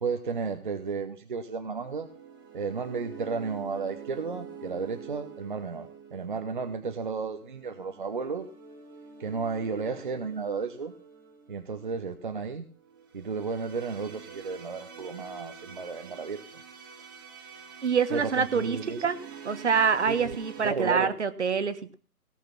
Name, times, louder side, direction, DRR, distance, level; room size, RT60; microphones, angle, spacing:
voice 1, 0.0-2.1 2.5-8.5 9.2-10.9 11.5-12.6 13.1-16.4 17.5-17.8 18.1-19.1 20.1-20.4 20.6-21.1, right 5 dB, 35° right, 7 dB, 0.8 m, -33 dB
sound 1, 1.4-20.7, right 7 dB, 15° right, 1.1 m, -47 dB
voice 2, 17.8-19.2 19.4-22.0, right 6 dB, 50° right, 13 dB, 1.3 m, -26 dB
17.5 x 6.6 x 5.9 m, 0.42 s
figure-of-eight pair, 155°, 45 cm